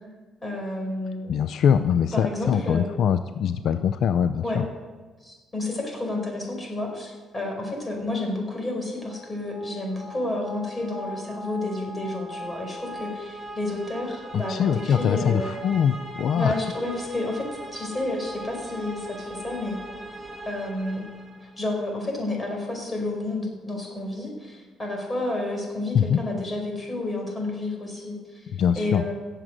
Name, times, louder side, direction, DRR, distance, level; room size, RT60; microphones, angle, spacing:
voice 1, 0.4-1.3 2.1-2.8 4.4-4.6 5.2-15.5 16.3-19.8 20.5-21.0 21.4-28.5 28.8-29.1, left 2 dB, 25° left, 1 dB, 5.3 m, -30 dB
voice 2, 1.3-4.6 14.3-16.6 25.9-26.2 28.5-29.0, left 8 dB, 70° left, 11 dB, 0.5 m, -23 dB
sound 1, 9.0-21.8, right 1 dB, 20° right, 2.2 m, -40 dB
17.5 x 7.5 x 6.5 m, 1.4 s
cardioid pair, 90°, 0 cm